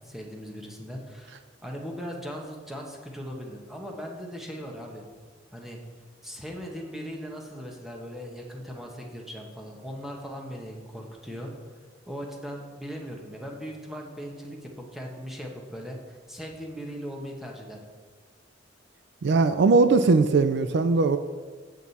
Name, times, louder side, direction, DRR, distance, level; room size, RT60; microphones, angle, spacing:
voice 1, 0.0-5.0 5.5-5.8 6.2-11.5 12.1-17.8, equal, ahead, 0 dB, 1.0 m, -39 dB
voice 2, 19.2-21.2, right 3 dB, 65° right, 10 dB, 0.4 m, -20 dB
8.1 x 7.4 x 4.1 m, 1.5 s
head